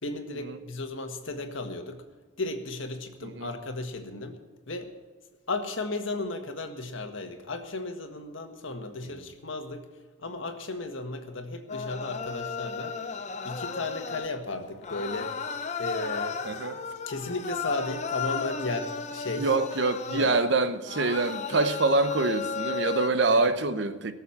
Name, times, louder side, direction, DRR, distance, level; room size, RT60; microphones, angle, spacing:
voice 1, 0.0-2.0 2.4-4.4 4.7-4.9 5.5-9.8 10.2-13.0 13.4-15.4 15.8-16.4 17.1-19.5 20.1-20.3 23.3-23.4, left 2 dB, 80° left, 1.6 m, -34 dB
sound 1, 11.7-14.5 14.8-23.1, left 5 dB, 35° left, 0.7 m, -34 dB
voice 2, 16.4-16.8 19.4-24.1, right 3 dB, 65° right, 0.8 m, -25 dB
17.5 x 7.3 x 7.3 m
head